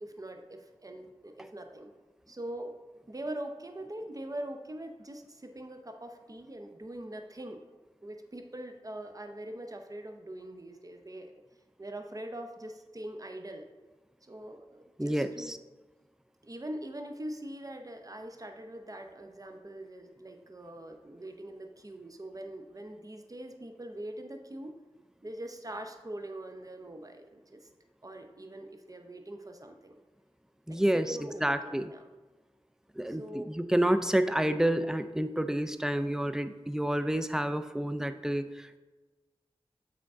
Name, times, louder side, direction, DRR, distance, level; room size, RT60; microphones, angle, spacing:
voice 1, 0.0-1.9 2.3-2.7 3.1-7.6 8.0-11.3 11.8-13.7 14.2-15.5 16.4-24.7 25.2-27.7 28.0-30.0 30.7-30.8 31.1-32.1 33.1-33.5, right 1 dB, 35° right, 5 dB, 0.7 m, -42 dB
voice 2, 15.0-15.6 30.7-31.9 33.0-38.8, right 1 dB, 5° right, 10 dB, 0.4 m, -29 dB
8.5 x 3.7 x 3.6 m, 1.2 s
wide cardioid pair, 45°, 10 cm